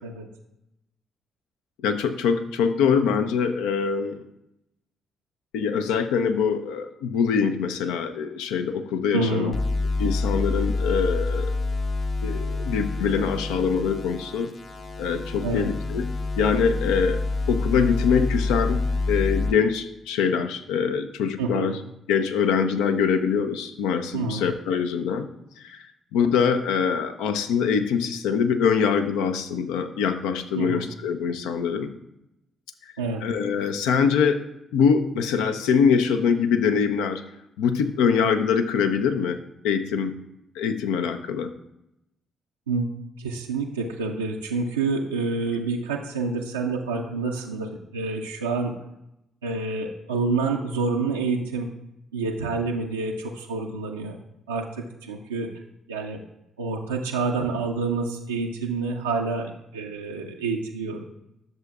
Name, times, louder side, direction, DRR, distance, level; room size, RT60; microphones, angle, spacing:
voice 1, 1.8-4.2 5.5-9.5 10.0-11.6 12.2-14.5 15.0-16.1 16.4-17.2 17.5-21.8 22.1-25.3 25.6-25.9 26.1-31.9 33.2-34.4 34.7-37.2 37.6-39.4 39.6-40.1 40.5-41.5, left 6 dB, 75° left, 8 dB, 0.5 m, -23 dB
voice 2, 9.1-9.6 15.4-15.7 21.4-21.8 24.1-24.5 30.5-30.9 33.0-33.2 42.7-42.9 43.2-48.7 49.4-51.7 52.1-54.2 54.5-55.5 55.9-56.2 56.6-61.0, right 4 dB, 90° right, -1 dB, 0.4 m, -28 dB
sound 1, 9.5-19.5, left 3 dB, 50° left, 1.0 m, -27 dB
10.5 x 6.7 x 2.4 m, 0.85 s
hypercardioid pair, 45°, 0 cm